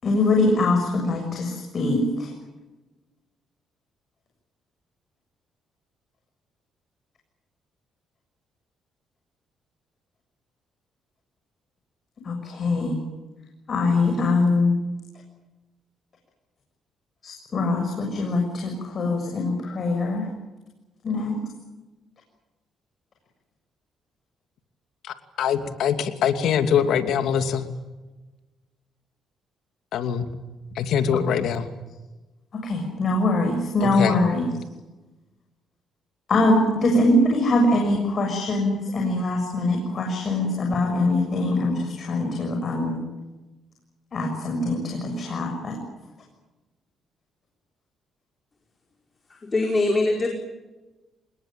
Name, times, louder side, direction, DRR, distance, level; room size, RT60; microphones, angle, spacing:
voice 1, 0.0-2.3 12.2-13.0 13.7-14.8 17.2-20.3 21.0-21.4 32.5-34.5 36.3-43.0 44.1-45.8, left 2 dB, 50° left, 2 dB, 6.7 m, -23 dB
voice 2, 25.0-27.7 29.9-30.3 30.7-31.7 33.8-34.2, left 8 dB, 75° left, 8 dB, 2.7 m, -23 dB
voice 3, 49.3-50.3, left 2 dB, 30° left, 2 dB, 4.8 m, -22 dB
26.5 x 21.0 x 9.1 m, 1.1 s
cardioid pair, 90°, 0 cm